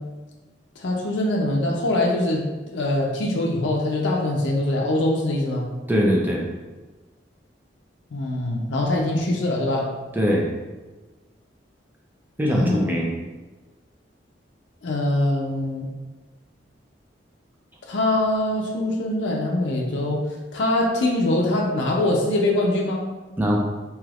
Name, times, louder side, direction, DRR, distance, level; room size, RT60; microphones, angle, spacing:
voice 1, 0.8-5.7 8.1-9.9 12.5-12.8 14.8-15.9 17.9-20.2 20.5-23.0, left 1 dB, 75° left, -1 dB, 0.5 m, -23 dB
voice 2, 5.9-6.4 10.1-10.5 12.4-13.1 23.4-23.6, equal, 10° right, -1 dB, 0.5 m, -21 dB
3.3 x 2.9 x 2.4 m, 1.2 s
head